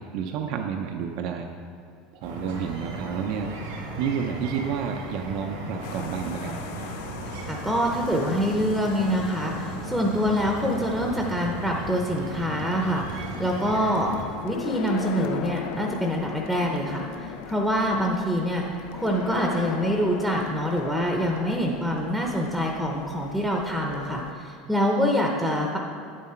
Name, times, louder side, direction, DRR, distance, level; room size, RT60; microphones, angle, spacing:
voice 1, 0.0-1.5 2.1-3.5 4.0-6.5, right 7 dB, 60° right, 3 dB, 0.6 m, -30 dB
sound 1, 2.2-14.2, right 2 dB, 90° right, 2.1 m, -36 dB
sound 2, 5.8-24.3, left 9 dB, 70° left, 0.4 m, -39 dB
voice 2, 7.5-14.1 14.4-18.7 18.9-25.8, equal, 5° right, 0 dB, 0.8 m, -25 dB
9.1 x 7.5 x 4.4 m, 2.3 s
supercardioid pair, 125°, 0 cm